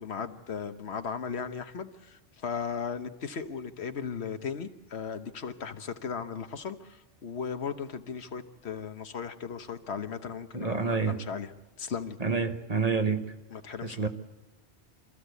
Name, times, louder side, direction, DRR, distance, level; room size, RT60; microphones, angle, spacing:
voice 1, 0.0-11.5 11.8-12.2 13.5-14.1, left 6 dB, 70° left, 9 dB, 1.3 m, -37 dB
voice 2, 10.5-11.2 12.2-13.2 13.8-14.1, right 5 dB, 35° right, 6 dB, 1.2 m, -28 dB
25.5 x 14.5 x 8.2 m, 1.1 s
omnidirectional pair, 1.1 m